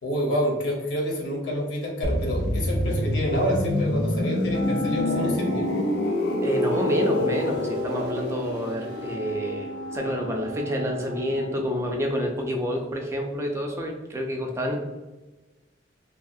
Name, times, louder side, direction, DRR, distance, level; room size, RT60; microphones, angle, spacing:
voice 1, 0.0-5.7, equal, 85° left, -1 dB, 0.8 m, -28 dB
sound 1, 2.0-11.7 11.9-12.2, left 1 dB, 55° left, 0.4 m, -27 dB
Wind instrument woodwind instrument, 4.5-12.1, equal, 80° right, 0.4 m, -37 dB
voice 2, 6.4-14.8, equal, 15° right, 1 dB, 0.3 m, -28 dB
2.7 x 2.3 x 2.6 m, 1.1 s
head